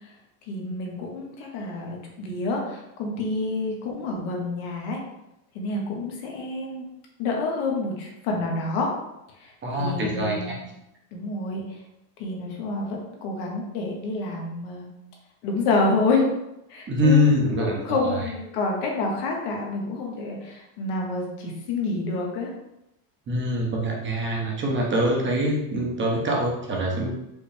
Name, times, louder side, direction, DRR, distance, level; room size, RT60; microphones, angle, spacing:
voice 1, 0.5-5.0 5.5-6.9 7.2-8.9 9.4-9.5 9.8-10.6 11.1-11.6 12.2-14.9 15.4-16.2 16.7-17.3 17.6-22.5, left 3 dB, 70° left, 0 dB, 1.2 m, -28 dB
voice 2, 9.6-10.6 16.9-18.2 23.3-27.1, left 1 dB, 25° right, -1 dB, 0.7 m, -24 dB
4.8 x 2.2 x 3.3 m, 0.87 s
supercardioid pair, 120°, 48 cm